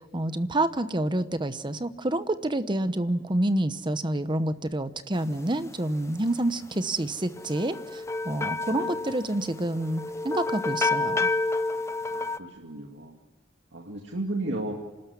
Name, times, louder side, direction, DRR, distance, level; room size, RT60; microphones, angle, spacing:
voice 1, 0.1-11.3, right 1 dB, 25° right, 12 dB, 0.9 m, -28 dB
sound 1, 7.4-12.4, left 3 dB, 15° left, 0.7 m, -29 dB
voice 2, 8.7-9.0 12.1-13.2 13.7-14.7, right 2 dB, 80° right, 0 dB, 2.2 m, -34 dB
27.0 x 13.0 x 9.7 m, 1.2 s
head